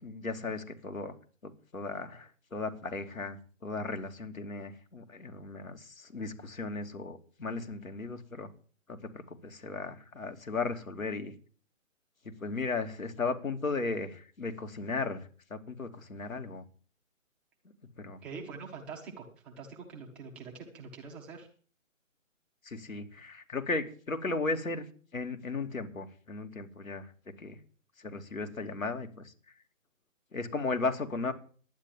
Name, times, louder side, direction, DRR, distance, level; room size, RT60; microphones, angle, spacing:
voice 1, 0.0-1.2 1.4-8.5 8.9-11.3 12.4-16.6 18.0-18.2 22.6-24.9 25.1-27.1 27.4-27.6 28.0-29.3 30.3-31.3, left 3 dB, 80° left, 5 dB, 2.9 m, -36 dB
voice 2, 18.2-21.5, right 5 dB, 5° right, 0 dB, 0.7 m, -44 dB
11.5 x 9.4 x 7.4 m, 0.43 s
figure-of-eight pair, 150°, 40 cm